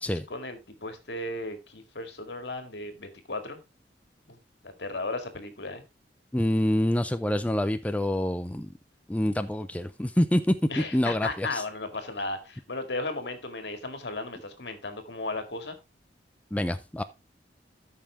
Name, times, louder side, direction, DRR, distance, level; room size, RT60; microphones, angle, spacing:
voice 1, 0.1-3.6 4.3-4.4 4.6-5.8 10.7-15.8, left 2 dB, 70° left, 2.1 m, -35 dB
voice 2, 6.3-8.7 9.1-11.6 16.5-17.0, left 1 dB, 10° left, 0.5 m, -26 dB
13.0 x 5.6 x 3.5 m
head